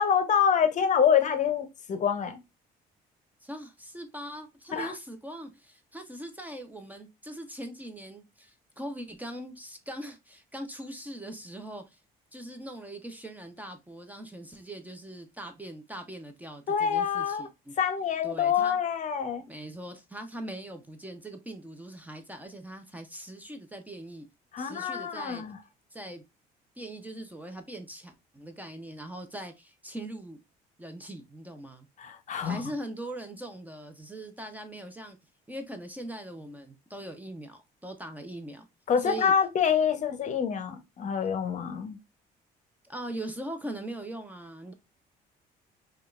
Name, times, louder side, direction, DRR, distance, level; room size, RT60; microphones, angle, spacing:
voice 1, 0.0-2.4 4.7-4.9 16.7-17.5 17.8-19.4 24.5-25.6 32.0-32.6 38.9-42.0, left 7 dB, 45° left, 0.7 m, -26 dB
voice 2, 3.4-12.0 12.3-17.7 18.2-18.8 19.5-24.3 24.6-25.4 25.9-26.2 26.8-30.4 30.8-31.9 32.4-35.2 35.5-38.7 39.0-39.3 42.8-44.7, right 1 dB, 10° right, 0.5 m, -41 dB
4.9 x 2.3 x 2.3 m
cardioid pair, 110°, 17 cm